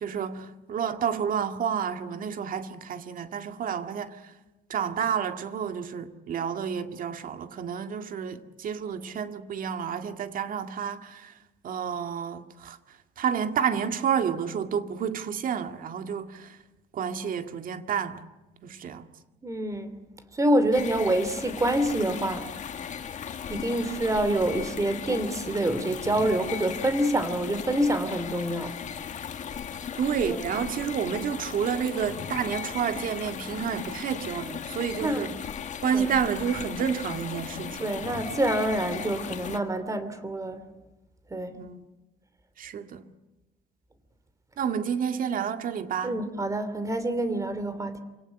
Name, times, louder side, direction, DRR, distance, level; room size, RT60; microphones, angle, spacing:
voice 1, 0.0-4.3 4.7-11.4 11.6-12.8 13.2-16.6 16.9-18.2 18.6-19.1 30.0-35.4 35.8-37.9 41.6-41.8 42.6-43.1 44.6-46.2, right 7 dB, 55° right, 2.0 m, -30 dB
voice 2, 19.4-20.0 20.4-22.5 23.5-28.7 30.2-30.4 35.0-35.2 35.9-36.1 37.8-40.6 41.3-41.5 46.0-48.0, right 1 dB, 20° right, 2.8 m, -26 dB
sound 1, 20.7-39.6, left 8 dB, 45° left, 2.0 m, -37 dB
28.0 x 18.0 x 10.0 m
cardioid pair, 110°, 17 cm